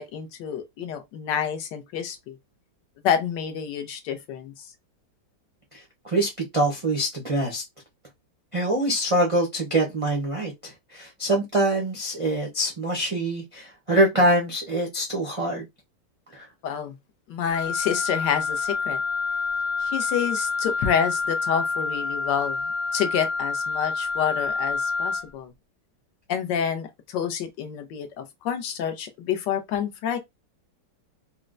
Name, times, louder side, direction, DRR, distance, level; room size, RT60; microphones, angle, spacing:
voice 1, 0.0-2.4 3.0-4.7 16.6-16.9 17.3-19.0 19.8-25.5 26.3-30.2, left 8 dB, 80° left, 1.3 m, -28 dB
voice 2, 5.7-7.6 8.5-15.7 16.3-16.5, right 1 dB, 55° right, 0.3 m, -24 dB
Wind instrument woodwind instrument, 17.5-25.3, left 4 dB, 60° left, 0.6 m, -28 dB
4.2 x 2.1 x 2.4 m
omnidirectional pair, 1.9 m